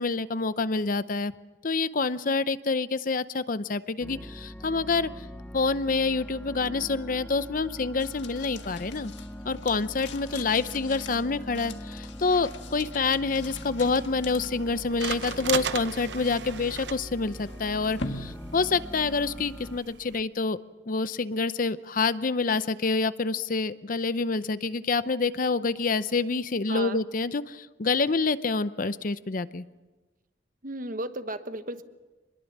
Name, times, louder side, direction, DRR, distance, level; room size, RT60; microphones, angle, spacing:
voice 1, 0.0-1.3 1.6-5.1 5.5-9.1 9.4-20.6 20.9-29.6, left 4 dB, 50° left, 14 dB, 0.7 m, -27 dB
sound 1, 4.0-19.8, equal, 5° left, 0.7 m, -42 dB
sound 2, 8.0-19.4, left 3 dB, 90° left, 1.7 m, -44 dB
sound 3, 13.4-20.2, right 7 dB, 75° right, 0.8 m, -38 dB
voice 2, 26.7-27.0 30.6-31.8, right 2 dB, 50° right, 9 dB, 1.2 m, -34 dB
26.0 x 21.5 x 7.3 m, 1.2 s
head